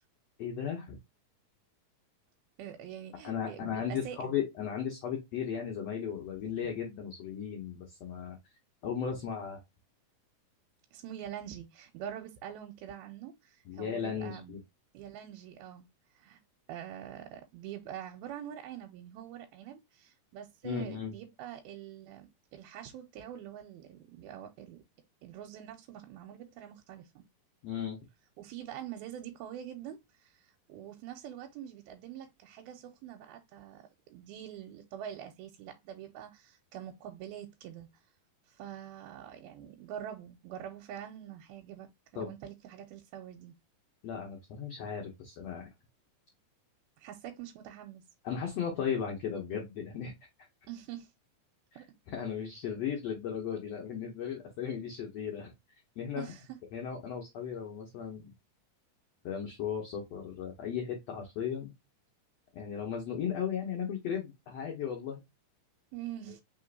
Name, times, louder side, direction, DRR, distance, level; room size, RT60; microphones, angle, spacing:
voice 1, 0.4-1.0 3.2-8.4 8.8-9.6 13.7-14.6 20.6-21.1 27.6-28.0 42.1-42.3 44.0-45.7 48.2-50.1 52.1-55.5 56.0-56.2 56.7-58.3 59.2-61.7 62.5-65.2, left 8 dB, 65° left, 1.6 m, -36 dB
voice 2, 2.6-4.4 10.9-14.6 14.9-15.9 16.1-16.4 16.7-22.3 22.5-24.8 25.2-27.2 28.4-38.0 38.5-41.9 42.1-43.5 47.0-48.0 50.7-51.1 51.8-51.9 56.2-56.6 65.9-66.4, right 10 dB, 85° right, 2.6 m, -45 dB
5.1 x 3.7 x 2.5 m
omnidirectional pair, 4.3 m